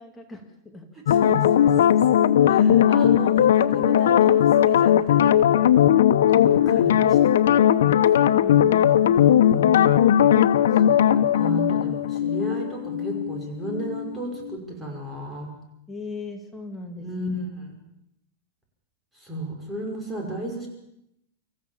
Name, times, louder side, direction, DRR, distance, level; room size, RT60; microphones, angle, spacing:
voice 1, 0.0-0.9 7.8-9.5 15.9-17.1, left 3 dB, 10° left, 3 dB, 2.2 m, -39 dB
sound 1, 1.1-14.2 14.4-14.6, left 10 dB, 90° left, 1.0 m, -18 dB
voice 2, 1.1-2.0 2.4-6.0 6.3-7.2 9.5-9.9 10.8-15.5 17.0-17.8 19.1-20.7, right 1 dB, 10° right, 0 dB, 5.6 m, -34 dB
26.0 x 15.0 x 7.3 m, 0.79 s
supercardioid pair, 155°, 0 cm